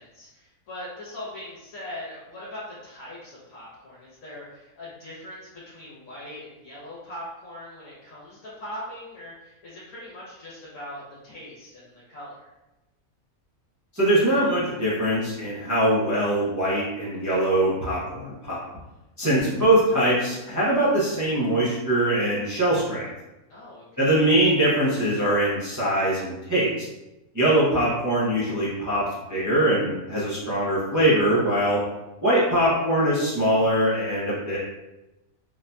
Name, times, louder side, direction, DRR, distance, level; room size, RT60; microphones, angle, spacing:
voice 1, 0.0-12.5 23.5-24.2, left 1 dB, 65° left, -7 dB, 1.2 m, -41 dB
voice 2, 13.9-18.6 19.2-23.1 24.0-26.7 27.3-31.8 32.2-34.6, right 1 dB, 25° right, -8 dB, 0.4 m, -22 dB
3.9 x 2.7 x 2.2 m, 1.0 s
omnidirectional pair, 1.5 m